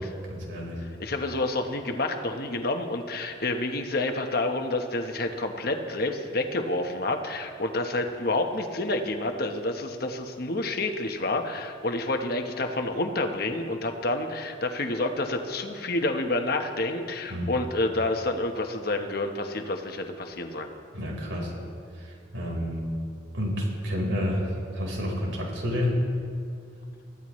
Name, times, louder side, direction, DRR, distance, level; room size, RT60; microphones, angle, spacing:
voice 1, 0.3-0.8 17.3-17.5 20.9-21.5 21.9-22.9 23.3-26.0, equal, 85° right, -2 dB, 4.4 m, -29 dB
voice 2, 1.0-20.7, left 2 dB, 50° left, 5 dB, 1.1 m, -29 dB
23.0 x 15.0 x 3.2 m, 2.4 s
head